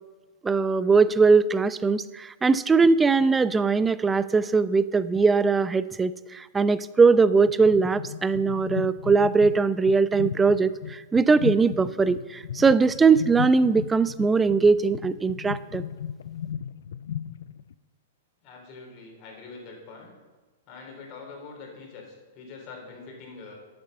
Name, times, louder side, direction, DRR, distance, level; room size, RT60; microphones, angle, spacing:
voice 1, 0.4-15.8, right 4 dB, 15° right, 16 dB, 0.4 m, -21 dB
sound 1, 7.6-17.7, left 9 dB, 65° left, 0.4 m, -36 dB
voice 2, 18.4-20.1 20.7-23.6, left 4 dB, 40° left, 0 dB, 3.8 m, -44 dB
11.0 x 8.7 x 5.5 m, 1.2 s
figure-of-eight pair, 105°, 0 cm